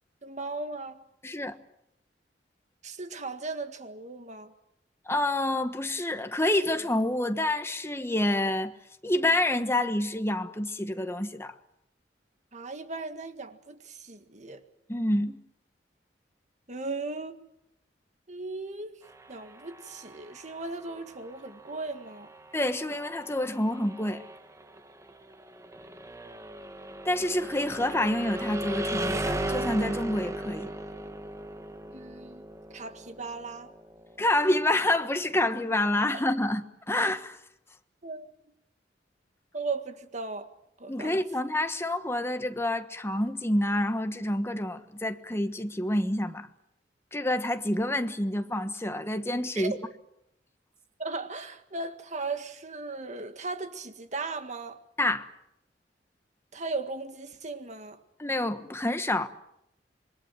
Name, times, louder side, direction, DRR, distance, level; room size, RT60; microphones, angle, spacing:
voice 1, 0.2-1.0 2.8-4.5 12.5-14.6 16.7-17.4 18.3-18.9 19.3-22.3 31.9-33.7 38.0-38.3 39.5-40.5 40.8-41.2 49.6-49.8 51.0-54.8 56.5-58.0, right 3 dB, 40° right, 1.8 m, -37 dB
voice 2, 1.2-1.6 5.1-8.7 9.0-11.5 14.9-15.4 22.5-24.2 27.0-30.7 34.2-37.4 40.9-46.5 47.1-49.7 55.0-55.3 58.2-59.3, left 1 dB, 15° left, 1.3 m, -28 dB
sound 1, 19.0-34.8, right 1 dB, 15° right, 1.4 m, -37 dB
27.0 x 22.0 x 7.5 m
head